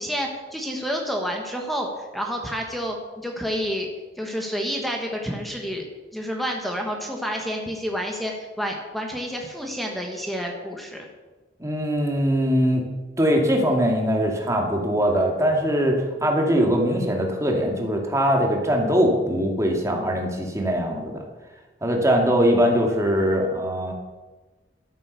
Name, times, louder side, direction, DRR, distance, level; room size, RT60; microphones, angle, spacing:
voice 1, 0.0-3.9 4.2-5.8 6.1-11.1, equal, ahead, 1 dB, 1.4 m, -29 dB
voice 2, 11.6-12.8 13.2-21.2 21.8-23.9, equal, 20° right, 1 dB, 2.4 m, -21 dB
12.5 x 8.9 x 6.8 m, 1.2 s
head